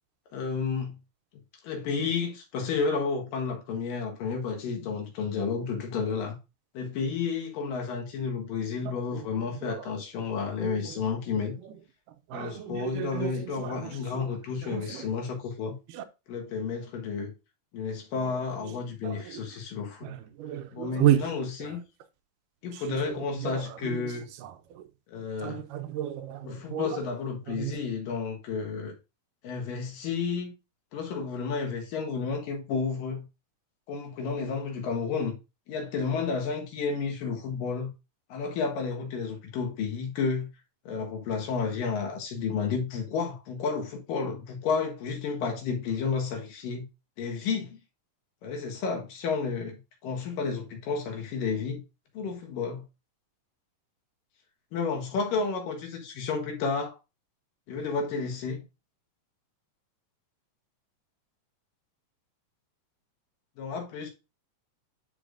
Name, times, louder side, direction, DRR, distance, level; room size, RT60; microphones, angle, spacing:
voice 1, 0.3-1.0 1.6-6.4 6.7-11.6 12.3-15.8 16.3-17.3 17.7-20.1 20.7-21.8 22.6-24.3 25.1-25.6 26.4-28.9 29.4-30.5 30.9-33.3 33.9-35.4 35.7-37.9 38.3-40.5 40.9-46.9 47.2-47.8 48.4-51.8 52.1-52.8 54.7-57.0 57.7-58.6 63.6-64.1, left 5 dB, 80° left, 3.1 m, -31 dB
voice 2, 8.9-9.2 9.6-9.9 10.6-10.8 12.3-14.3 14.6-15.1 15.9-16.0 18.2-18.4 18.6-18.7 19.0-19.4 20.0-21.2 22.9-24.0 24.4-24.8 25.4-27.0 27.5-27.7, right 13 dB, 80° right, 2.2 m, -32 dB
9.9 x 5.0 x 2.5 m
omnidirectional pair, 3.9 m